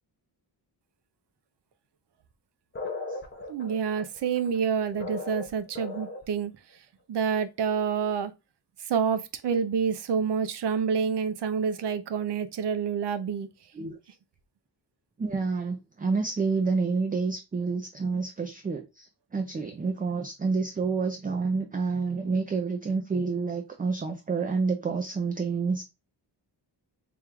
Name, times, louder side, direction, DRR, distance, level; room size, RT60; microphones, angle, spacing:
sound 1, 2.7-6.4, left 3 dB, 25° left, 0.9 m, -37 dB
voice 1, 3.5-8.3 8.8-13.5, right 6 dB, 70° right, 0.6 m, -28 dB
voice 2, 15.2-25.8, right 4 dB, 20° right, 0.4 m, -29 dB
3.6 x 2.3 x 4.4 m
wide cardioid pair, 150°, 43 cm